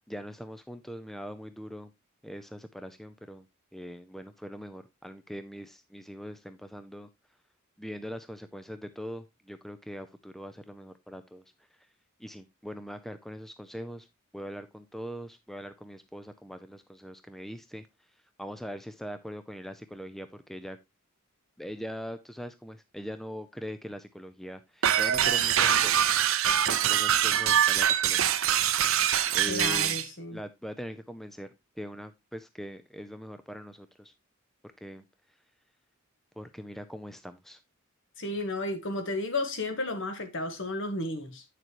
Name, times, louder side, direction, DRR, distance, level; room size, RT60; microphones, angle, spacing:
voice 1, 0.1-1.9 2.2-3.4 3.7-7.1 7.8-11.4 11.8-11.9 12.2-14.1 14.3-17.9 18.4-20.8 21.6-26.1 26.7-28.4 29.3-30.0 30.3-34.1 34.8-35.1 36.4-37.6, equal, ahead, 0.5 m, -41 dB
sound 1, 24.8-30.1, right 10 dB, 70° right, 0.7 m, -24 dB
voice 2, 29.4-30.4 38.2-41.4, left 2 dB, 60° left, 1.6 m, -33 dB
9.0 x 6.6 x 3.0 m
head